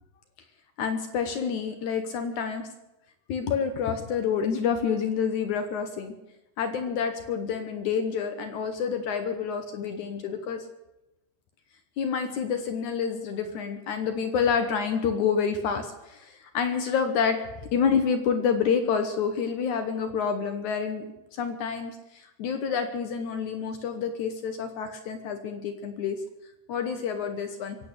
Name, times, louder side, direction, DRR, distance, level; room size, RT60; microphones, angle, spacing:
voice 1, 0.8-2.7 3.3-6.1 6.6-10.7 12.0-17.4 17.7-21.1 21.4-26.2 26.7-27.8, left 6 dB, 70° left, 7 dB, 1.9 m, -28 dB
24.0 x 8.6 x 6.7 m, 0.95 s
omnidirectional pair, 4.7 m